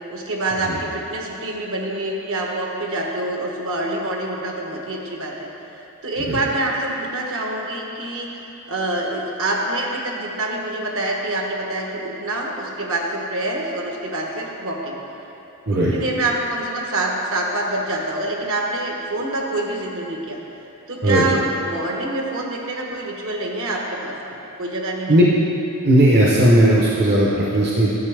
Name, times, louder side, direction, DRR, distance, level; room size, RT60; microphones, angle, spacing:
voice 1, 0.1-5.5 6.0-8.3 8.7-15.0 15.7-20.4 20.9-25.2, right 2 dB, 65° right, 0 dB, 1.1 m, -26 dB
voice 2, 25.8-27.9, right 1 dB, 50° right, -5 dB, 0.8 m, -16 dB
11.0 x 7.0 x 3.4 m, 2.9 s
head